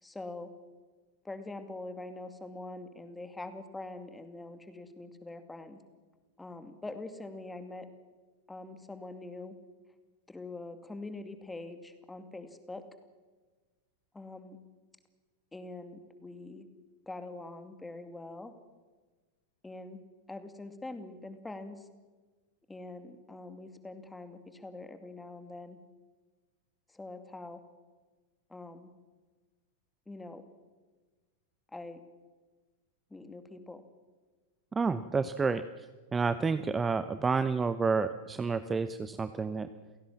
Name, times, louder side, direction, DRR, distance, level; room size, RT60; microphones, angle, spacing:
voice 1, 0.0-0.5 1.2-5.8 6.4-7.9 8.5-9.6 10.3-12.8 14.1-14.6 15.5-16.6 17.1-18.5 19.6-20.0 20.3-21.9 22.7-25.8 26.9-27.6 28.5-28.9 30.1-30.4 31.7-32.0 33.1-33.8, left 2 dB, 10° left, 9 dB, 2.4 m, -44 dB
voice 2, 34.7-35.9 36.1-39.7, right 4 dB, 15° right, 12 dB, 0.8 m, -30 dB
29.0 x 17.0 x 7.5 m, 1.3 s
figure-of-eight pair, 90°, 0 cm